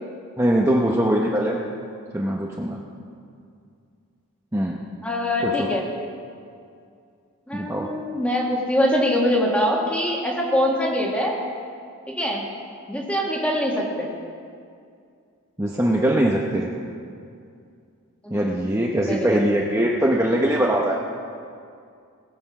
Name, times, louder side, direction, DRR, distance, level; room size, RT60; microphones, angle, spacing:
voice 1, 0.4-1.6 2.1-2.8 4.5-4.8 5.4-5.7 7.5-7.9 15.6-16.7 18.3-21.0, right 1 dB, 15° right, -2 dB, 0.8 m, -21 dB
voice 2, 5.0-5.8 7.5-11.3 12.1-12.4 12.9-14.1 18.2-18.4 19.1-19.4, left 1 dB, 5° left, -2 dB, 1.7 m, -23 dB
20.0 x 6.9 x 5.9 m, 2.3 s
head